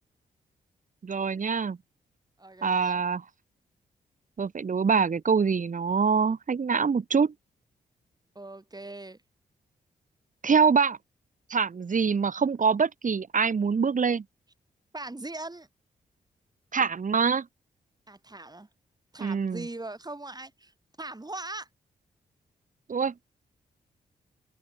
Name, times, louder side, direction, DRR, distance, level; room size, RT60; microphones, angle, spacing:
voice 1, 1.0-1.8 2.6-3.2 4.4-7.3 10.4-11.0 11.5-14.2 16.7-17.5 19.2-19.7 22.9-23.1, right 5 dB, 50° right, 1.9 m, -24 dB
voice 2, 2.4-3.0 8.4-9.2 14.9-15.7 18.1-18.7 19.1-20.7 21.0-21.7, right 2 dB, 25° right, 5.7 m, -40 dB
supercardioid pair, 40°, 17 cm